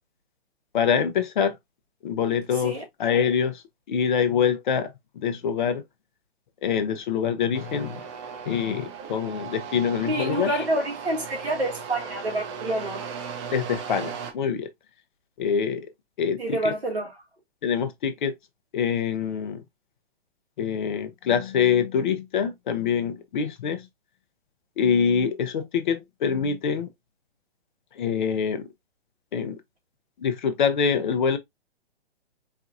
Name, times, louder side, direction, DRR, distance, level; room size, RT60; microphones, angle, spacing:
voice 1, 0.7-1.6 2.0-3.6 3.9-5.8 6.6-8.0 8.5-10.6 13.5-14.7 15.4-15.9 16.2-16.4 16.6-16.7 17.6-18.3 18.7-19.6 20.6-23.9 24.8-26.9 28.0-28.7 29.3-29.6 30.2-31.4, left 7 dB, 50° left, 0.8 m, -25 dB
sound 1, 7.5-14.3, right 6 dB, 30° right, 0.7 m, -37 dB
voice 2, 10.0-13.1 16.4-17.2, right 1 dB, 85° right, 1.7 m, -28 dB
4.6 x 2.3 x 2.5 m
figure-of-eight pair, 120°, 31 cm